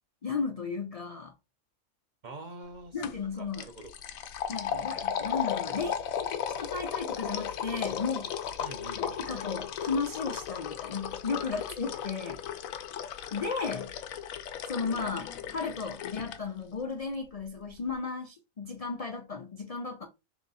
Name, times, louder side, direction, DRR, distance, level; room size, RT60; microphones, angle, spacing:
voice 1, 0.2-1.3 2.9-3.7 4.5-8.3 9.0-12.4 13.3-14.0 14.6-20.1, left 4 dB, 70° left, 0.3 m, -34 dB
voice 2, 2.2-3.0 3.3-3.9 8.6-9.3 11.5-11.7 12.7-12.8, right 2 dB, 45° right, 0.6 m, -46 dB
sound 1, 3.0-3.2 3.5-16.4, left 9 dB, 85° left, 1.0 m, -36 dB
3.5 x 2.9 x 3.9 m
omnidirectional pair, 1.4 m